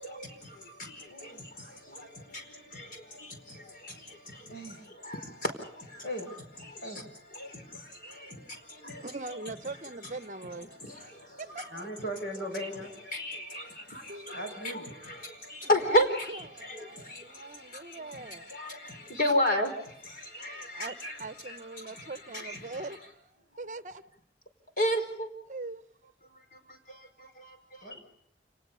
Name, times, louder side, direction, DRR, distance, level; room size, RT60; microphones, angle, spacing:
voice 1, 0.0-9.4 10.3-11.7 12.4-23.0 24.8-25.3 26.3-27.9, equal, 50° left, 4 dB, 4.7 m, -35 dB
voice 2, 1.1-1.5 1.8-2.4 2.7-2.8 4.5-4.8 6.0-6.3 6.8-7.0 11.7-12.9 14.3-14.8 18.0-18.3 23.4-23.6 27.8-28.0, equal, 70° left, 4 dB, 6.8 m, -39 dB
voice 3, 9.0-11.6 14.1-14.5 15.8-18.5 20.7-23.3 23.6-24.0 25.5-25.8, right 3 dB, 45° right, 12 dB, 0.8 m, -41 dB
29.0 x 19.5 x 5.6 m, 0.72 s
head